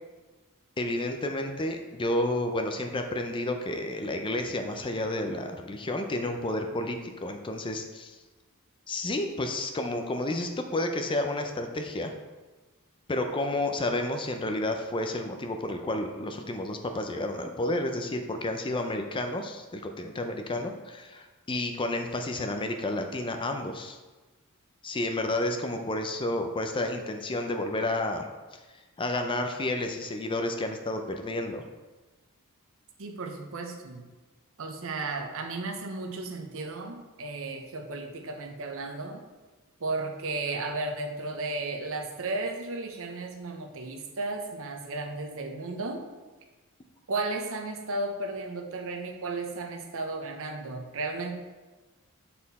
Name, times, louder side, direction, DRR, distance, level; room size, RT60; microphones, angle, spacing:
voice 1, 0.8-8.2 8.9-12.1 13.1-24.0 24.8-28.3 28.5-28.6 29.0-31.6, left 1 dB, 20° left, 5 dB, 0.5 m, -31 dB
voice 2, 33.0-34.1 34.6-39.2 39.8-46.0 47.1-51.3, right 3 dB, 65° right, 4 dB, 0.8 m, -34 dB
7.5 x 4.3 x 4.1 m, 1.2 s
head